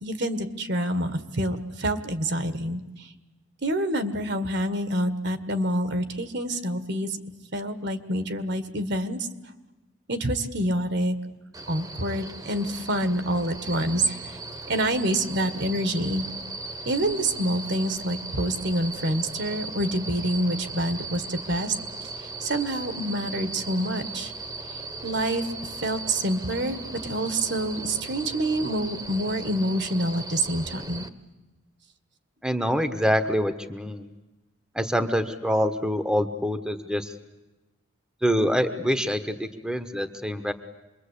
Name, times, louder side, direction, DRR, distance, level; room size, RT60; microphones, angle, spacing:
voice 1, 0.0-2.8 3.6-7.2 7.5-9.2 10.1-11.2 11.7-14.2 14.7-16.3 16.9-21.7 22.4-24.3 25.0-25.4 25.8-26.8 27.1-31.0, right 1 dB, 60° right, 10 dB, 1.8 m, -27 dB
sound 1, 11.5-31.1, right 3 dB, 20° right, 1.3 m, -38 dB
voice 2, 32.4-34.1 34.7-37.1 38.2-40.5, equal, 5° right, 8 dB, 1.2 m, -25 dB
27.0 x 22.5 x 8.5 m, 1.1 s
head